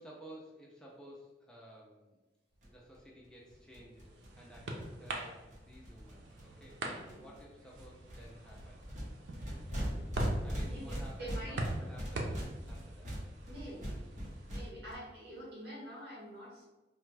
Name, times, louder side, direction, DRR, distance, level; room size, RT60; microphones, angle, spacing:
voice 1, 0.0-2.2 2.6-6.9 7.2-8.9 10.4-13.1, right 1 dB, 5° left, -4 dB, 0.5 m, -54 dB
sound 1, 2.6-2.7 2.9-3.0 3.2-3.3 3.5-6.7 7.1-7.4 7.7-14.9, equal, 45° right, 1.1 m, -41 dB
sound 2, 3.6-14.7, right 1 dB, 85° right, 0.6 m, -43 dB
voice 2, 6.9-7.3 9.9-10.1 10.6-11.6 13.5-14.0 14.5-16.7, right 1 dB, 70° right, -4 dB, 1.5 m, -47 dB
4.2 x 2.3 x 3.2 m, 1.1 s
head